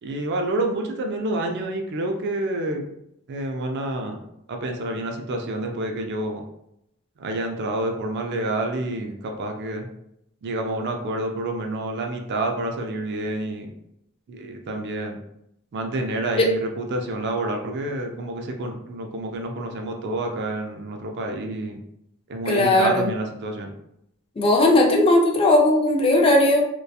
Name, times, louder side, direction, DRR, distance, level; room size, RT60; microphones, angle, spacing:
voice 1, 0.0-2.9 3.3-4.2 4.5-6.4 7.2-9.9 10.4-13.7 14.3-15.2 15.7-21.8 22.3-23.7, right 2 dB, 50° right, 3 dB, 0.3 m, -28 dB
voice 2, 22.5-23.1 24.4-26.7, left 1 dB, 25° left, 0 dB, 0.4 m, -17 dB
2.7 x 2.2 x 2.3 m, 0.79 s
head